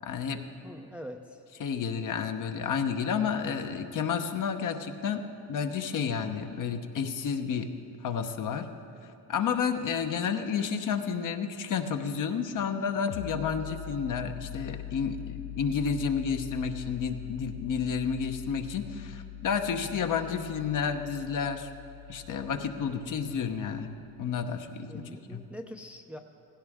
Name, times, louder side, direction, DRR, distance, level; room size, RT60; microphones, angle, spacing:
voice 1, 0.0-0.5 1.6-7.7 8.0-8.7 9.0-21.7 22.1-25.4, left 6 dB, 45° left, 6 dB, 1.1 m, -31 dB
voice 2, 0.6-1.4 19.8-20.0 24.9-26.2, equal, 5° right, 4 dB, 0.6 m, -44 dB
sound 1, 13.1-24.4, left 14 dB, 70° left, 0.5 m, -43 dB
16.5 x 16.0 x 3.6 m, 2.9 s
supercardioid pair, 95°, 42 cm